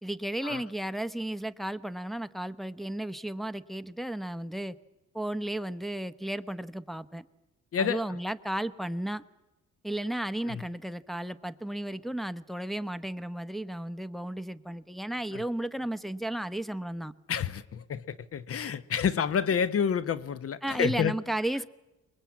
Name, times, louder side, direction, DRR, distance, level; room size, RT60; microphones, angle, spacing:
voice 1, 0.0-4.8 5.1-7.2 7.8-9.2 9.8-17.1 20.6-21.7, right 1 dB, ahead, 0.8 m, -34 dB
voice 2, 17.3-21.1, left 7 dB, 50° left, 0.9 m, -29 dB
23.5 x 20.5 x 8.5 m
cardioid pair, 90°, 30 cm